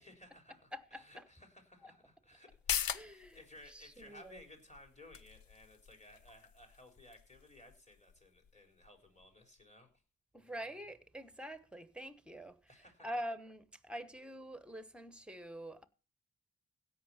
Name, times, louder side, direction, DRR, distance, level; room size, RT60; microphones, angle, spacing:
voice 1, 0.0-9.9 12.7-13.1, left 1 dB, 20° left, 3.9 m, -58 dB
voice 2, 0.7-1.2 1.8-1.9 2.9-3.4 3.7-4.4 10.3-12.6 13.0-15.9, equal, 5° right, 1.1 m, -45 dB
sound 1, 2.5-9.6 10.0-10.1, left 9 dB, 80° left, 0.7 m, -44 dB
16.0 x 5.8 x 5.6 m
cardioid pair, 70°, 34 cm